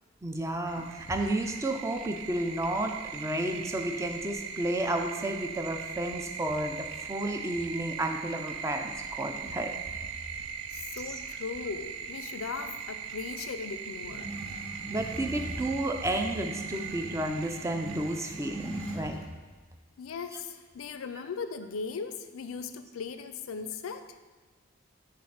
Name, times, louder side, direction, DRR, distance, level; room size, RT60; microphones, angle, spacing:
voice 1, 0.2-9.7 11.1-11.2 14.7-19.2, right 1 dB, 15° right, 4 dB, 0.4 m, -32 dB
sound 1, 0.7-19.0, right 7 dB, 80° right, 0.4 m, -40 dB
voice 2, 10.7-14.3 20.0-24.2, left 5 dB, 80° left, 10 dB, 0.4 m, -38 dB
sound 2, 14.1-19.2, right 1 dB, 5° left, 1.1 m, -41 dB
7.3 x 2.5 x 5.7 m, 1.4 s
head